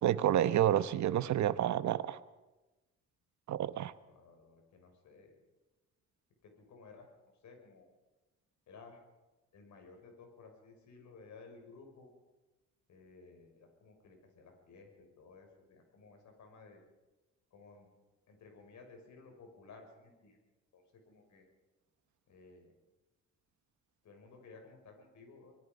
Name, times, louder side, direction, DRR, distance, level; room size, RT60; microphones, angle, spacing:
voice 1, 0.0-2.2 3.5-3.9, right 11 dB, 70° right, 13 dB, 1.1 m, -29 dB
voice 2, 4.1-5.4 6.4-7.1 7.4-7.9 8.7-9.0 9.5-12.1 12.9-16.8 17.5-17.9 18.3-20.4 20.7-21.5 22.3-22.7 24.0-25.6, left 4 dB, 70° left, 4 dB, 6.3 m, -56 dB
25.5 x 21.0 x 5.4 m, 1.1 s
cardioid pair, 90°, 30 cm